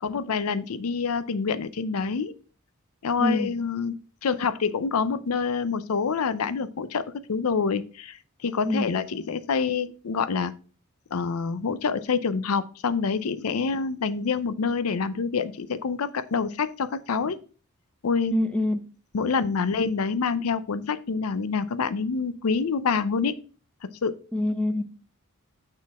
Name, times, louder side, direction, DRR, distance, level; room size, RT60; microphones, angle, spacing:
voice 1, 0.0-2.3 3.0-7.0 7.3-8.2 8.4-10.5 11.1-17.4 18.0-18.4 19.1-23.4 24.0-24.1, left 5 dB, 85° left, 0.5 m, -26 dB
voice 2, 3.2-3.5 8.6-8.9 18.3-18.8 24.3-24.8, left 1 dB, 5° left, 0.7 m, -25 dB
6.5 x 3.8 x 5.9 m
head